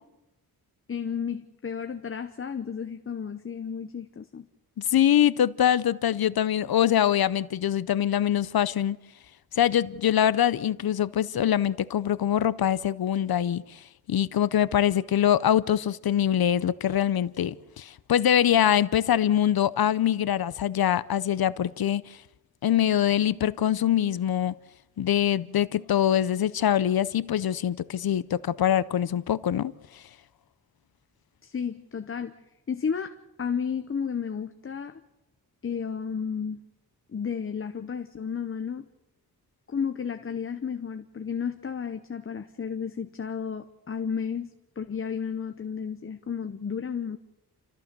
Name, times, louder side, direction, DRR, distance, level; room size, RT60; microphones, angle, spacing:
voice 1, 0.9-4.5 31.4-32.3 32.7-35.0 35.6-36.6 37.1-38.8 39.7-47.2, left 6 dB, 35° left, 0.8 m, -32 dB
voice 2, 4.8-9.0 9.5-22.2 22.6-24.5 25.0-30.0, left 10 dB, 70° left, 0.6 m, -24 dB
30.0 x 14.0 x 6.8 m
wide cardioid pair, 175°, 38 cm